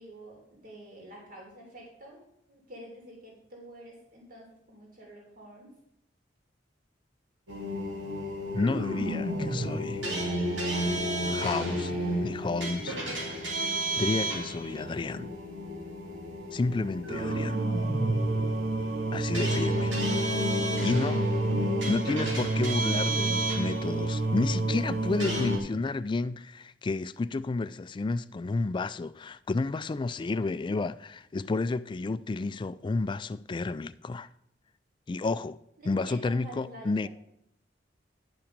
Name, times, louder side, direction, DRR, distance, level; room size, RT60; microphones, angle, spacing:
voice 1, 0.0-2.2 2.5-5.7 35.8-37.1, right 1 dB, 50° right, 3.0 m, -48 dB
sound 1, 7.5-25.6, right 1 dB, 85° right, 2.5 m, -29 dB
voice 2, 8.5-10.1 11.3-13.0 14.0-15.3 16.5-17.6 19.1-19.9 20.8-21.3 21.9-34.3 35.1-35.6 35.8-37.1, left 3 dB, 25° left, 0.3 m, -31 dB
11.0 x 5.9 x 5.1 m
head